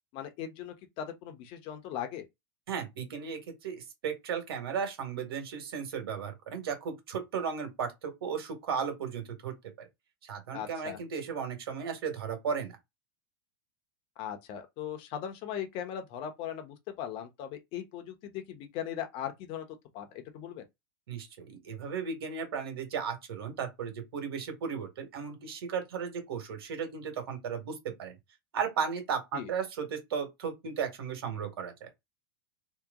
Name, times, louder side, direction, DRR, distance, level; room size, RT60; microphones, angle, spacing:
voice 1, 0.1-2.3 10.5-11.0 14.2-19.6 19.9-20.6 29.3-29.5, left 9 dB, 45° left, 1.1 m, -39 dB
voice 2, 2.7-9.9 10.2-12.7 21.1-28.2 28.5-31.9, right 6 dB, 85° right, 1.9 m, -35 dB
3.2 x 3.0 x 3.7 m
supercardioid pair, 125°, 12 cm